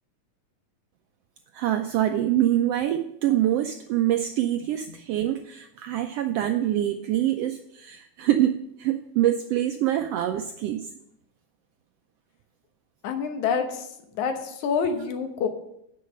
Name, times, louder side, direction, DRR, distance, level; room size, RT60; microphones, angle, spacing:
voice 1, 1.5-10.8, right 12 dB, 85° right, 7 dB, 1.4 m, -25 dB
voice 2, 13.0-13.9 14.1-15.5, left 6 dB, 80° left, 6 dB, 2.5 m, -27 dB
9.6 x 6.6 x 6.5 m, 0.78 s
omnidirectional pair, 3.3 m